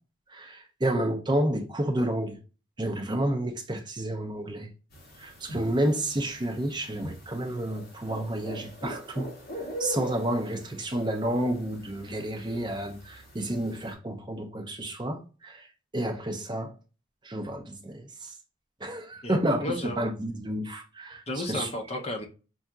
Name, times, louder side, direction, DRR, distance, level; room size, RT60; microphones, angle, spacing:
voice 1, 0.3-2.4 2.8-4.7 5.2-9.3 9.8-15.7 15.9-16.7 17.2-18.3 18.8-21.7, right 1 dB, 20° right, 0.5 m, -30 dB
sound 1, 4.9-13.9, equal, 45° left, 1.6 m, -42 dB
voice 2, 19.2-20.1 21.3-22.3, left 1 dB, 30° left, 0.6 m, -33 dB
5.4 x 2.8 x 2.3 m
head